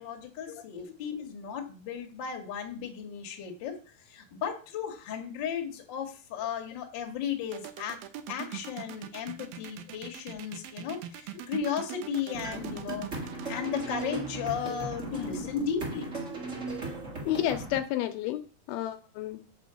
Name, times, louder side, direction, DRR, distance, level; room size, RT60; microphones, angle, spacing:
voice 1, 0.0-3.8 4.1-8.0 8.3-13.1 13.5-16.1, left 7 dB, 60° left, 3 dB, 1.2 m, -35 dB
sound 1, 7.5-15.3, right 12 dB, 75° right, 2.3 m, -42 dB
sound 2, 12.3-17.8, right 2 dB, 60° right, 0.7 m, -37 dB
voice 2, 17.3-18.4 18.7-19.5, left 12 dB, 80° left, 7 dB, 2.4 m, -31 dB
7.6 x 4.5 x 6.8 m, 0.37 s
omnidirectional pair, 4.6 m